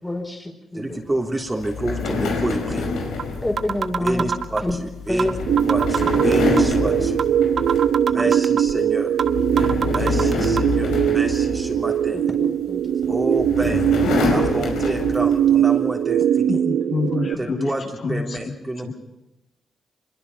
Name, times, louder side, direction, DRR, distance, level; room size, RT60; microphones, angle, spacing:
voice 1, 0.0-1.0 3.4-4.2 4.6-4.8 5.1-5.3 6.0-6.1 8.1-8.3 9.5-10.1 12.1-13.0 14.0-14.5 17.4-17.5, left 1 dB, 15° left, 3 dB, 4.8 m, -29 dB
voice 2, 0.7-2.9 4.0-5.4 5.6-7.2 8.1-9.2 9.9-12.2 13.1-13.9 14.3-16.6 17.4-17.8 18.1-18.9, right 1 dB, 20° right, 1 dB, 3.4 m, -28 dB
sound 1, 1.6-8.1 8.5-8.8 9.2-12.2 13.0-15.5, left 3 dB, 85° left, 5.2 m, -26 dB
sound 2, 2.7-2.8 3.2-3.3 3.6-4.7 5.2-5.3 5.6-6.7 7.2-7.3 7.6-8.7 9.2-9.3 9.6-10.6, right 6 dB, 60° right, 1.1 m, -24 dB
sound 3, 5.5-17.3, right 9 dB, 75° right, 0.7 m, -21 dB
voice 3, 16.5-17.7 18.0-18.4 18.8-18.9, left 4 dB, 60° left, 1 dB, 7.9 m, -26 dB
25.0 x 22.5 x 5.7 m, 1.0 s
cardioid pair, 65°, 0 cm